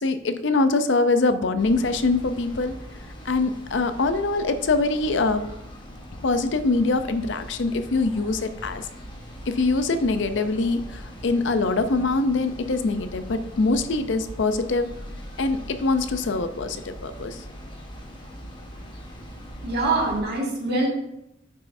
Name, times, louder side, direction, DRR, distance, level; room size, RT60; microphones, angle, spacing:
voice 1, 0.0-2.8 3.2-5.4 6.2-8.9 9.5-14.9 15.4-17.4, left 3 dB, 70° left, 10 dB, 0.6 m, -23 dB
sound 1, 1.6-20.2, equal, 25° left, 1.1 m, -41 dB
voice 2, 19.6-20.9, right 2 dB, 55° right, -2 dB, 1.9 m, -24 dB
9.8 x 5.5 x 2.6 m, 0.82 s
head